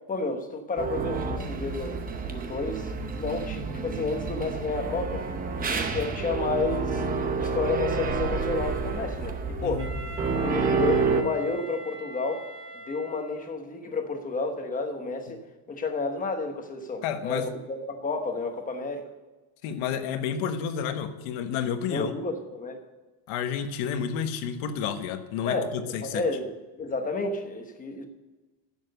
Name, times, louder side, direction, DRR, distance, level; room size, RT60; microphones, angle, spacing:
voice 1, 0.1-2.0 2.3-5.3 5.6-7.0 7.4-9.9 10.4-12.5 12.9-15.4 15.7-19.1 21.9-22.9 25.4-28.1, left 3 dB, 15° left, 6 dB, 1.0 m, -31 dB
sound 1, 0.8-11.2, right 4 dB, 20° right, 0.7 m, -29 dB
voice 2, 9.6-9.9 15.3-15.4 17.0-17.5 19.6-22.1 23.3-26.2, left 7 dB, 75° left, 8 dB, 1.3 m, -30 dB
Wind instrument woodwind instrument, 9.8-13.6, right 1 dB, 35° right, 2.7 m, -42 dB
10.5 x 7.4 x 6.6 m, 1.2 s
cardioid pair, 170°, 49 cm